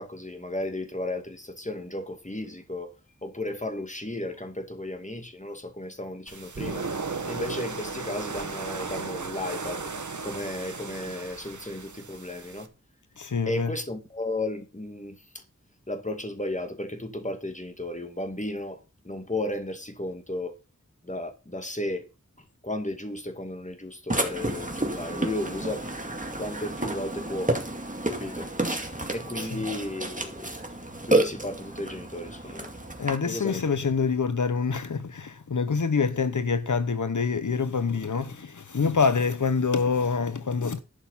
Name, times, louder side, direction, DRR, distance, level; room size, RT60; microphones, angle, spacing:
voice 1, 0.0-2.9 3.2-6.9 7.3-9.9 10.2-12.7 13.5-15.2 15.9-20.6 21.0-22.0 22.6-25.9 26.4-27.5 28.1-28.5 29.1-30.5 31.1-32.7 33.3-33.8, left 1 dB, 25° left, 2.3 m, -34 dB
sound 1, 6.3-12.7, right 4 dB, 75° right, 1.4 m, -35 dB
voice 2, 13.2-13.7 29.4-29.6 33.0-40.8, left 5 dB, 75° left, 0.9 m, -26 dB
Burping eructation, 24.1-33.2, right 2 dB, 25° right, 2.3 m, -30 dB
11.5 x 6.3 x 5.6 m
wide cardioid pair, 50°, 30 cm